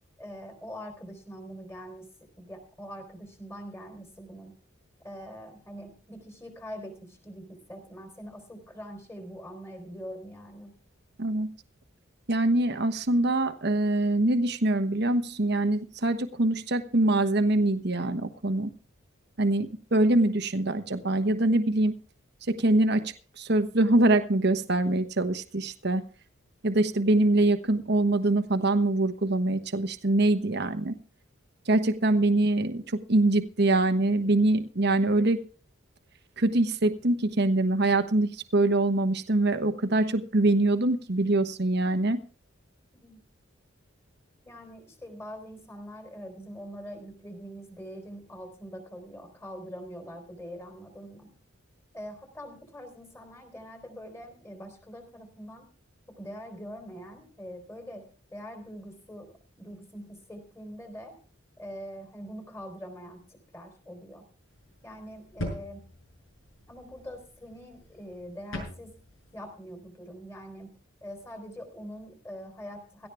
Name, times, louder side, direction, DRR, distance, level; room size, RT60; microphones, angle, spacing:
voice 1, 0.2-2.1 2.4-4.5 5.0-10.7 32.2-32.3 43.0-43.2 44.4-51.3 51.9-55.7 56.2-58.0 58.3-61.2 61.6-64.3 64.8-65.8 66.7-69.0 69.3-70.7 71.0-73.1, equal, 10° left, 5 dB, 3.7 m, -43 dB
voice 2, 12.3-18.7 19.4-21.9 22.5-26.0 26.6-30.9 31.7-35.4 36.4-42.2, right 2 dB, 55° right, 9 dB, 1.1 m, -24 dB
sound 1, 64.5-69.4, left 1 dB, 85° left, 6.8 m, -42 dB
17.0 x 13.5 x 3.5 m, 0.39 s
head